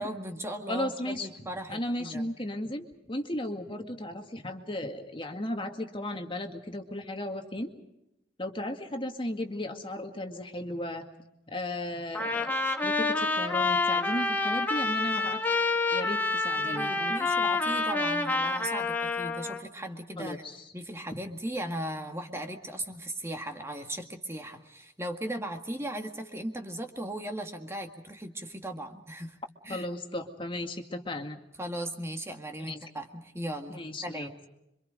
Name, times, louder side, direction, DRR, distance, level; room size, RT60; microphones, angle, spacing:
voice 1, 0.0-2.3 16.6-20.4 20.7-29.4 29.6-29.9 31.6-34.4, right 1 dB, 15° right, 4 dB, 1.9 m, -37 dB
voice 2, 0.7-1.3 1.7-7.7 8.4-11.0 11.5-12.6 12.8-15.4 15.9-17.1 20.2-20.6 21.1-21.2 29.7-31.4 32.6-32.8 33.7-34.5, left 1 dB, 25° left, 4 dB, 2.1 m, -35 dB
Trumpet, 12.2-19.6, left 3 dB, 10° left, 2.1 m, -28 dB
27.0 x 25.5 x 5.2 m, 0.87 s
head